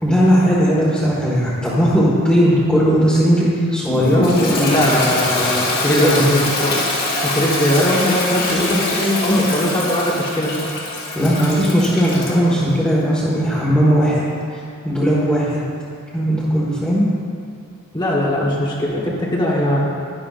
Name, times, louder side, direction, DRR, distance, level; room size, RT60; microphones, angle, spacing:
voice 1, 0.0-5.0 5.4-5.5 5.9-6.3 9.2-9.3 11.1-14.2 14.5-15.6 16.1-17.1, equal, 5° left, -11 dB, 1.6 m, -17 dB
Toilet flush, 3.8-12.4, left 2 dB, 45° left, 2.1 m, -23 dB
voice 2, 4.7-6.8 7.2-10.5 17.9-19.8, equal, 20° left, -5 dB, 1.3 m, -20 dB
12.0 x 11.0 x 2.5 m, 2.4 s
head